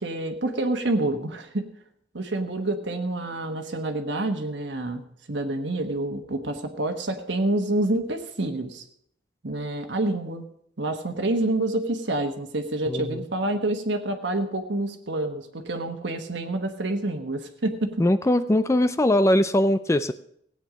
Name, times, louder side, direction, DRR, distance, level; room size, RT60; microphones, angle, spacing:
voice 1, 0.0-1.7 2.1-8.8 9.4-10.5 10.8-17.9, right 2 dB, 70° right, 5 dB, 1.3 m, -28 dB
voice 2, 12.9-13.2 18.0-20.1, left 1 dB, 15° left, 12 dB, 0.4 m, -21 dB
17.0 x 9.0 x 5.1 m, 0.70 s
head